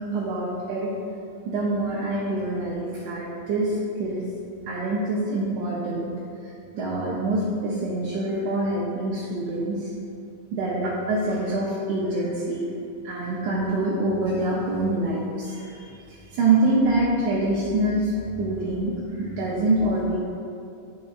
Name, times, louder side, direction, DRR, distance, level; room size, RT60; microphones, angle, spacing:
voice 1, 0.1-0.9 1.5-4.3 4.7-6.1 6.7-9.9 10.5-12.7 13.0-20.2, right 2 dB, 75° right, -5 dB, 1.9 m, -25 dB
9.2 x 4.7 x 2.4 m, 2.5 s
omnidirectional pair, 3.9 m